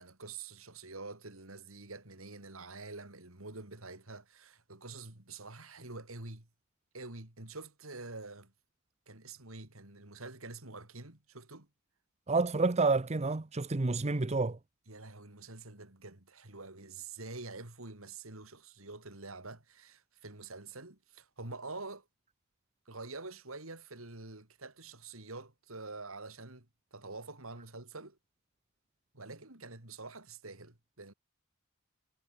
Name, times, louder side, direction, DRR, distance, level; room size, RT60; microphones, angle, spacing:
voice 1, 0.0-6.5 6.9-8.5 9.1-11.7 14.9-22.0 22.9-26.7 26.9-28.2 29.1-31.1, right 3 dB, 75° right, 4.1 m, -47 dB
voice 2, 12.3-14.6, right 3 dB, 30° right, 0.7 m, -29 dB
head